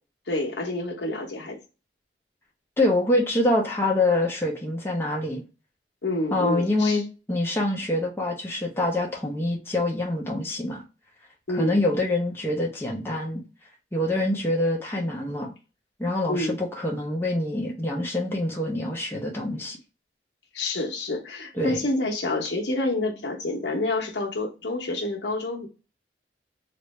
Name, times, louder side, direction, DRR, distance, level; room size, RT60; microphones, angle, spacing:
voice 1, 0.3-1.6 6.0-7.0 11.5-11.8 16.3-16.6 20.5-25.7, left 2 dB, 80° left, 0.9 m, -28 dB
voice 2, 2.8-5.4 6.3-10.8 11.5-13.4 13.9-15.5 16.0-19.8 21.5-21.8, left 1 dB, 15° left, 0.7 m, -25 dB
3.2 x 2.6 x 3.2 m
head